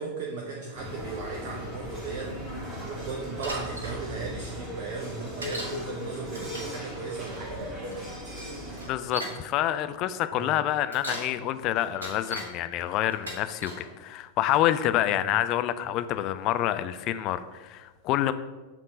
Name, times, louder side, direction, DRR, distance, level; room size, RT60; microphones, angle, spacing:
voice 1, 0.0-2.4 2.8-8.0 10.3-10.5 15.3-15.4, right 4 dB, 50° right, 0 dB, 0.7 m, -37 dB
sound 1, 0.7-8.9, equal, 25° right, 1.9 m, -37 dB
Bicycle, 3.4-4.0 5.4-5.8 6.3-6.8 7.9-8.0 8.7-9.4 10.7-11.3 11.8-12.5 13.1-13.8 14.5-14.9, right 1 dB, 75° right, 1.3 m, -37 dB
voice 2, 8.8-18.3, left 12 dB, 40° left, 12 dB, 0.3 m, -27 dB
7.3 x 3.7 x 3.9 m, 1.3 s
figure-of-eight pair, 90°, 0 cm